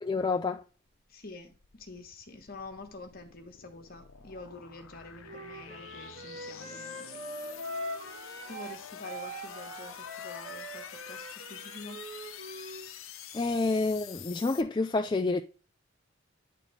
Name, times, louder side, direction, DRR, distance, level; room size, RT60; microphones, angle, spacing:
voice 1, 0.0-0.6 13.3-15.4, left 3 dB, 20° left, 0.3 m, -28 dB
sound 1, 1.0-14.6, left 8 dB, 75° left, 0.7 m, -47 dB
voice 2, 1.1-7.2 8.5-12.0, left 3 dB, 45° left, 1.3 m, -47 dB
Wind instrument woodwind instrument, 5.2-8.8 9.0-12.9, equal, 50° right, 1.9 m, -42 dB
10.0 x 4.2 x 3.2 m
head